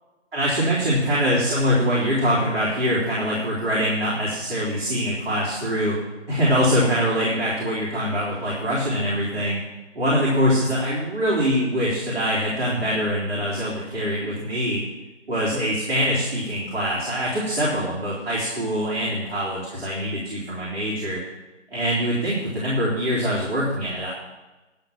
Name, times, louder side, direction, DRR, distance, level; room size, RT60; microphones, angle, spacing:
voice 1, 0.3-6.0 6.3-9.6 10.0-14.8 15.3-21.2 21.7-24.1, equal, 50° right, -8 dB, 3.7 m, -23 dB
10.5 x 6.1 x 8.8 m, 1.1 s
figure-of-eight pair, 175°, 37 cm